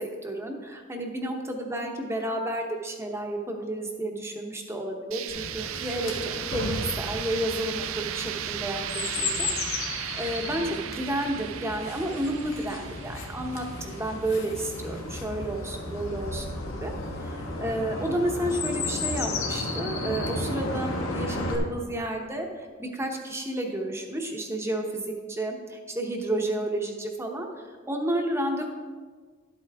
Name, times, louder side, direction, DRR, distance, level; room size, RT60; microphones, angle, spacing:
voice 1, 0.0-9.5 10.2-16.9 17.2-28.7, right 1 dB, 15° right, 2 dB, 0.9 m, -31 dB
sound 1, 5.1-14.9, right 11 dB, 70° right, 0.4 m, -36 dB
Chirp tweet, 5.3-21.6, left 2 dB, 90° left, 1.4 m, -34 dB
11.5 x 8.3 x 3.5 m, 1.5 s
head